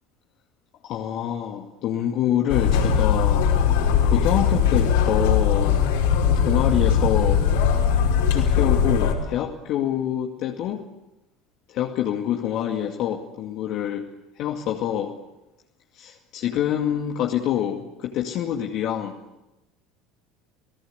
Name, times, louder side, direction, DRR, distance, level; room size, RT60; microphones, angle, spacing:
voice 1, 0.8-3.4 4.0-5.8 6.4-7.4 8.3-10.8 11.7-14.1 14.4-15.1 15.9-19.2, left 10 dB, 55° left, 1 dB, 2.3 m, -26 dB
sound 1, 2.5-9.1, left 7 dB, 70° left, 5.3 m, -20 dB
29.5 x 18.5 x 8.3 m, 0.97 s
figure-of-eight pair, 70°, 0 cm